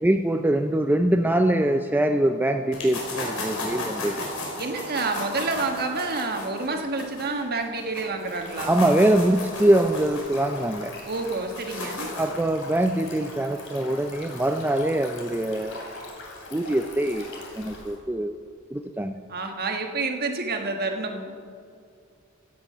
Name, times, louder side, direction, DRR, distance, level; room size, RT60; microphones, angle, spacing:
voice 1, 0.0-4.2 8.7-10.9 12.2-15.8 16.5-18.4 18.7-19.1, right 1 dB, 10° right, 5 dB, 0.4 m, -23 dB
sound 1, 2.7-8.0 8.3-12.4, left 2 dB, 85° left, 4.0 m, -34 dB
voice 2, 4.6-8.7 11.0-12.1 19.3-21.3, right 3 dB, 50° right, 4 dB, 1.4 m, -28 dB
Stream, 8.2-18.0, left 2 dB, 65° left, 2.8 m, -41 dB
15.5 x 8.5 x 5.6 m, 2.4 s
head